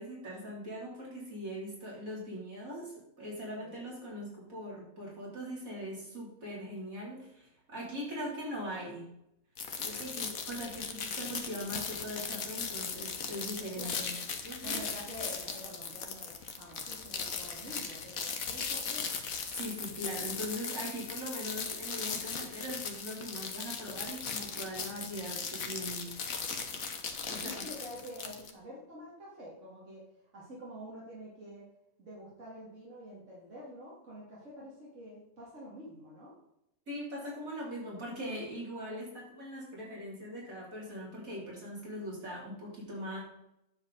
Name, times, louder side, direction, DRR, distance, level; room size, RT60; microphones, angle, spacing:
voice 1, 0.0-9.1 9.8-14.8 19.5-26.1 27.3-27.6 36.9-43.2, equal, 75° right, -4 dB, 3.9 m, -41 dB
sound 1, 9.6-28.5, left 5 dB, 75° left, 1.6 m, -38 dB
voice 2, 13.6-14.1 14.6-19.1 27.2-30.0 30.3-31.7 32.0-36.3, equal, 60° right, -6 dB, 3.1 m, -47 dB
9.2 x 7.5 x 4.1 m, 0.83 s
omnidirectional pair, 1.5 m